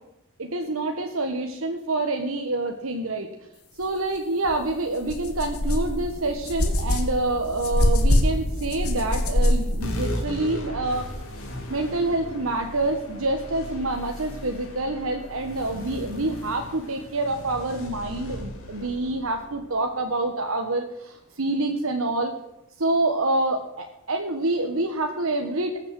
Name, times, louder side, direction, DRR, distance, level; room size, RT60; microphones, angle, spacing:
voice 1, 0.4-3.3 3.8-11.1 11.7-22.3 22.8-25.8, right 2 dB, 70° right, 4 dB, 1.3 m, -27 dB
sound 1, 4.5-4.6 5.0-10.1, left 1 dB, 80° left, 2.3 m, -23 dB
sound 2, 9.8-20.7, left 1 dB, 65° left, 3.9 m, -37 dB
20.0 x 7.4 x 7.7 m, 0.87 s
head